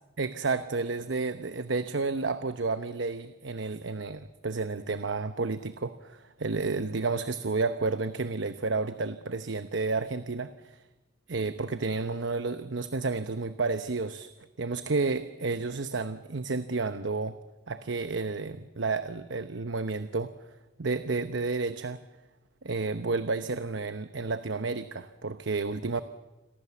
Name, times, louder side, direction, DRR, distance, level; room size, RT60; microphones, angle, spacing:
voice 1, 0.2-10.8 11.3-14.3 14.6-17.4 17.7-20.3 20.8-22.0 22.6-26.0, right 3 dB, 75° right, 11 dB, 0.9 m, -31 dB
29.5 x 22.0 x 7.1 m, 1.1 s
head